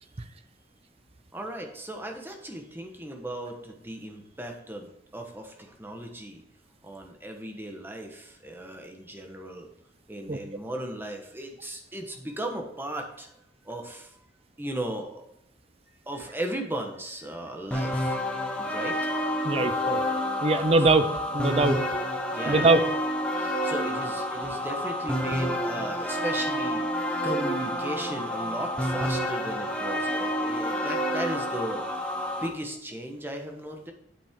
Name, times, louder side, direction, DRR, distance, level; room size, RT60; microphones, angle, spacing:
voice 1, 1.3-6.4 6.8-9.7 10.1-13.3 13.6-14.2 14.6-15.2 16.1-18.2 18.5-18.9 22.3-22.7 23.6-32.1 32.4-33.9, right 1 dB, 10° right, 3 dB, 1.1 m, -36 dB
sound 1, 17.7-32.5, equal, 5° left, 1.1 m, -29 dB
voice 2, 19.4-20.0 20.4-21.8 22.5-22.8, right 3 dB, 35° right, 11 dB, 0.5 m, -22 dB
8.5 x 7.6 x 3.7 m, 0.77 s
head